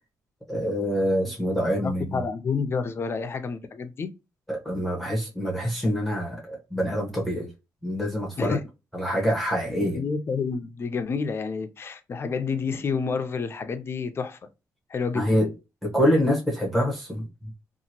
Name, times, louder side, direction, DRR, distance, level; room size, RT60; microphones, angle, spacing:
voice 1, 0.5-2.2 4.5-7.5 7.8-8.6 8.9-10.0 15.1-15.5 15.8-17.5, equal, ahead, 0.9 m, -25 dB
voice 2, 1.8-4.1 8.4-8.6 9.8-14.4 14.9-15.4, left 5 dB, 40° left, 0.4 m, -29 dB
2.8 x 2.5 x 2.8 m
cardioid pair, 120°, 7 cm